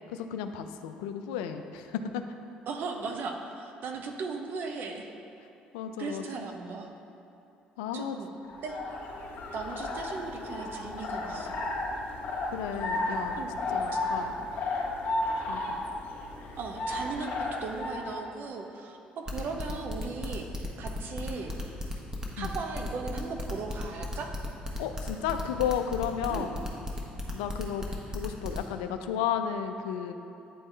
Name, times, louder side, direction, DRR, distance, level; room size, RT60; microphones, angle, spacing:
voice 1, 0.1-2.2 5.7-6.2 7.8-8.2 12.5-13.4 13.7-14.3 15.5-15.8 22.4-22.5 24.8-26.5 27.3-27.9 28.1-30.1, left 8 dB, 75° left, 7 dB, 0.3 m, -33 dB
voice 2, 2.7-5.1 6.0-6.9 7.9-8.3 8.6-8.9 9.5-11.6 13.4-13.5 16.6-21.5 22.4-24.3 26.3-26.6, right 4 dB, 55° right, 3 dB, 0.7 m, -37 dB
sound 1, 8.4-18.2, left 2 dB, 55° left, 1.1 m, -33 dB
sound 2, 19.3-28.6, left 1 dB, 15° right, 1.1 m, -35 dB
9.2 x 4.1 x 3.4 m, 2.9 s
figure-of-eight pair, 50°, 4 cm